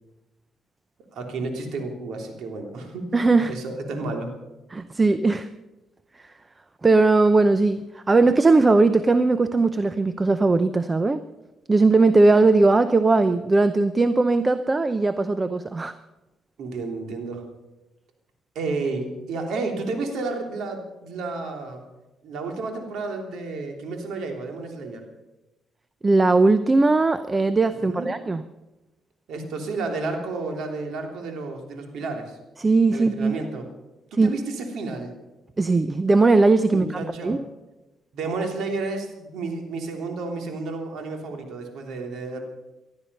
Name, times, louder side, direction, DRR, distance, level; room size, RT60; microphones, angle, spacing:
voice 1, 1.1-3.1 3.5-4.3 16.6-17.4 18.5-21.8 22.2-25.0 27.7-28.1 29.3-32.4 32.9-33.6 34.1-35.1 36.7-37.4 38.1-42.4, right 3 dB, 75° right, 3 dB, 3.1 m, -31 dB
voice 2, 3.1-3.6 4.7-5.5 6.8-11.2 11.7-15.9 26.0-28.4 32.6-33.4 34.2-34.3 35.6-37.4, right 3 dB, 25° right, 12 dB, 0.7 m, -19 dB
19.5 x 12.5 x 5.5 m, 1.0 s
cardioid pair, 90°, 0 cm